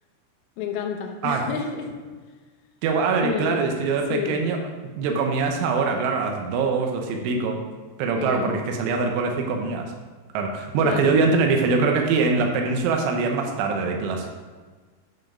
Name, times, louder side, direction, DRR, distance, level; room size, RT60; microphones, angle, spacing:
voice 1, 0.6-1.9 3.2-3.6 4.1-4.4 8.2-8.6 10.8-11.2, left 7 dB, 90° left, 1 dB, 2.1 m, -30 dB
voice 2, 2.8-4.6 5.0-7.6 8.0-9.9 10.3-14.3, right 4 dB, 80° right, 2 dB, 3.3 m, -23 dB
9.9 x 4.5 x 5.0 m, 1.4 s
omnidirectional pair, 5.6 m